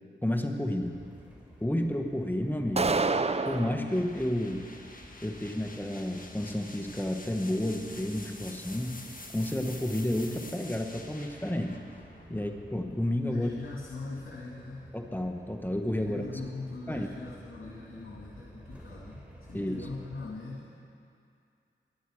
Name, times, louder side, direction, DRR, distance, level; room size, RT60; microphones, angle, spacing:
voice 1, 0.2-1.0 1.6-3.1 3.4-4.6 5.2-9.0 9.3-11.8 12.3-13.5 14.9-16.2 16.9-17.1 19.5-19.9, left 1 dB, 10° left, 3 dB, 1.3 m, -31 dB
sound 1, 0.8-20.3, right 1 dB, 5° right, 3.5 m, -53 dB
sound 2, 2.8-3.8, right 3 dB, 30° right, 0.6 m, -27 dB
sound 3, 3.9-13.6, left 2 dB, 40° left, 1.5 m, -48 dB
voice 2, 13.3-14.9 16.0-20.8, left 3 dB, 75° left, -5 dB, 2.2 m, -42 dB
23.5 x 10.0 x 4.9 m, 2.5 s
cardioid pair, 45°, 21 cm